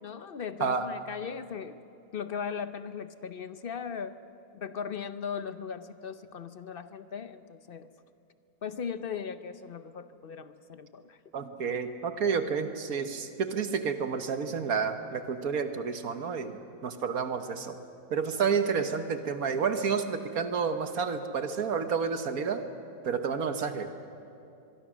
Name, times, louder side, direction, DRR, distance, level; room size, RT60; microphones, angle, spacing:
voice 1, 0.0-1.8 2.1-4.2 4.5-7.9 8.6-11.2, left 7 dB, 50° left, 11 dB, 0.7 m, -38 dB
voice 2, 11.3-17.8 18.1-22.6 23.0-23.9, right 6 dB, 65° right, 8 dB, 1.5 m, -30 dB
24.5 x 22.5 x 6.2 m, 2.7 s
omnidirectional pair, 1.7 m